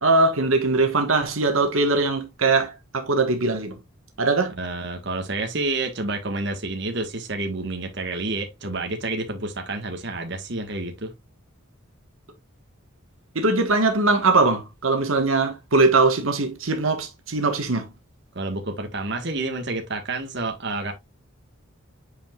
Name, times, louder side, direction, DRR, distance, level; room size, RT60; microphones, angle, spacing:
voice 1, 0.0-3.7 4.2-4.5 13.3-17.9, right 3 dB, 80° right, 1.4 m, -21 dB
voice 2, 4.6-11.1 18.3-20.9, right 2 dB, 55° right, 1.5 m, -29 dB
8.8 x 5.0 x 2.4 m
head